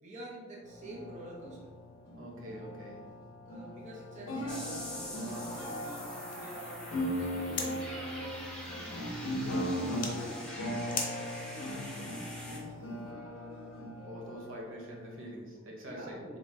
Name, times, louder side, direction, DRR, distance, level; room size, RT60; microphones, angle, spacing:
voice 1, 0.0-1.7 3.5-6.0 6.3-8.5 8.9-10.4 10.9-12.2 15.9-16.4, right 1 dB, 35° right, -3 dB, 0.7 m, -48 dB
sound 1, 0.6-15.3, equal, 75° left, 0.7 m, -39 dB
voice 2, 2.1-3.1 8.7-9.1 14.0-16.4, equal, 75° right, -1 dB, 1.0 m, -45 dB
sound 2, 3.8-13.1, left 5 dB, 40° left, 0.7 m, -46 dB
sound 3, 4.5-12.6, equal, 5° left, 0.8 m, -44 dB
5.3 x 3.6 x 2.7 m, 1.5 s
head